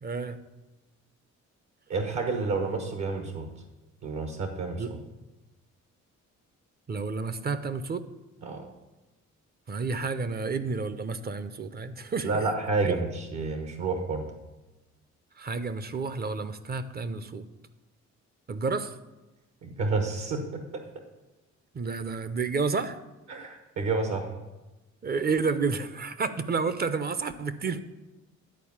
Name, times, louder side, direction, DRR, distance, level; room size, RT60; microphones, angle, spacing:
voice 1, 0.0-0.4 4.8-5.0 6.9-8.1 9.7-12.4 12.8-13.0 15.4-17.5 18.5-19.0 21.7-23.0 25.0-27.8, right 4 dB, 30° right, 13 dB, 0.6 m, -30 dB
voice 2, 1.9-3.5 4.0-5.0 8.4-8.6 12.2-14.3 19.6-20.8 23.3-24.3, right 3 dB, 65° right, 5 dB, 1.3 m, -29 dB
10.5 x 4.3 x 7.1 m, 1.1 s
cardioid pair, 90°, 30 cm